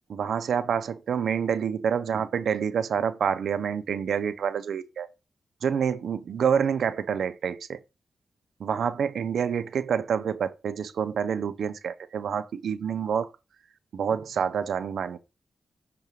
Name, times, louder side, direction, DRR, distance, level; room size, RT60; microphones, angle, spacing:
voice 1, 0.1-5.1 5.6-7.8 8.6-13.3 13.9-15.2, right 7 dB, 85° right, 0.6 m, -27 dB
6.8 x 5.3 x 3.1 m
cardioid pair, 85°, 0 cm